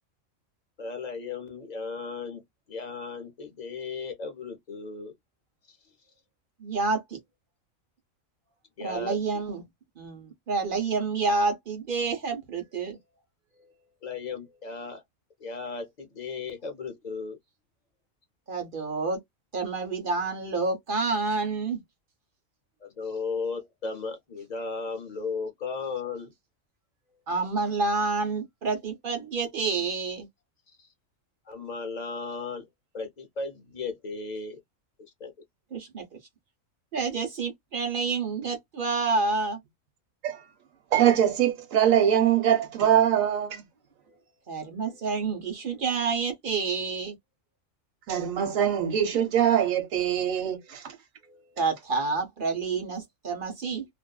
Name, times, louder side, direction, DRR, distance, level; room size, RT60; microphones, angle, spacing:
voice 1, 0.8-2.4 2.7-5.1 8.8-9.2 14.0-15.0 15.4-17.4 22.8-26.3 31.5-32.7 32.9-34.6 35.2-35.3, left 4 dB, 50° left, 0.5 m, -35 dB
voice 2, 6.6-7.2 8.8-9.6 10.0-13.0 18.5-19.2 19.5-21.8 27.3-30.3 35.7-36.0 36.9-39.6 44.5-47.1 51.3-53.9, right 4 dB, 45° right, 0.9 m, -29 dB
voice 3, 40.9-43.6 48.1-50.8, right 10 dB, 75° right, 1.3 m, -23 dB
2.5 x 2.4 x 2.2 m
omnidirectional pair, 1.4 m